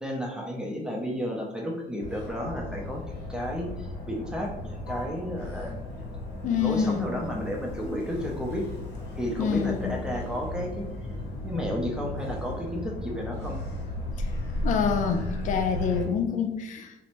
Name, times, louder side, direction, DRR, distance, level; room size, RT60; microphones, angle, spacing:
voice 1, 0.0-5.8 6.6-8.6 9.2-10.8 11.4-13.7, equal, 5° right, -1 dB, 0.5 m, -32 dB
Motor vehicle (road), 2.0-16.0, left 1 dB, 85° left, 0.7 m, -35 dB
voice 2, 6.4-7.1 9.4-9.9 14.6-16.9, left 6 dB, 50° left, 6 dB, 0.4 m, -26 dB
2.6 x 2.0 x 2.9 m, 0.96 s
cardioid pair, 110°, 17 cm